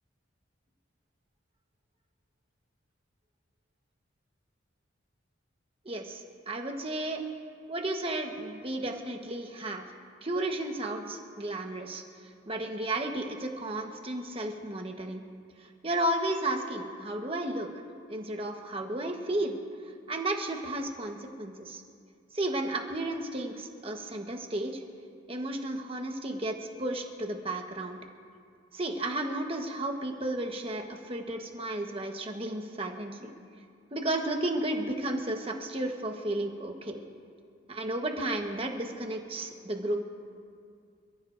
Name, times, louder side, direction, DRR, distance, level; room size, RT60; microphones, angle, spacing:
voice 1, 5.8-7.2 7.7-9.8 10.2-12.0 12.5-15.2 15.8-17.7 18.1-19.6 20.1-21.8 22.3-24.8 25.3-28.0 28.7-33.3 33.9-37.0 37.7-40.0, right 1 dB, 30° right, 3 dB, 1.2 m, -33 dB
27.5 x 15.0 x 2.6 m, 2.3 s
head